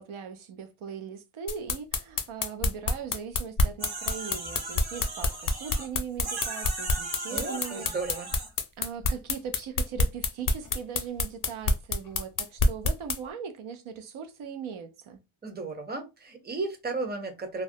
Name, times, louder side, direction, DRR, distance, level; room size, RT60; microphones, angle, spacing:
voice 1, 0.0-7.9 8.8-15.2, right 7 dB, 75° right, 0.6 m, -39 dB
sound 1, 1.5-13.2, left 3 dB, 45° left, 0.5 m, -26 dB
sound 2, 3.8-5.9 6.2-8.5, right 3 dB, 50° right, 0.9 m, -38 dB
voice 2, 7.3-8.3 15.4-17.6, right 3 dB, 20° right, 0.6 m, -34 dB
2.3 x 2.1 x 2.6 m
wide cardioid pair, 95°, 49 cm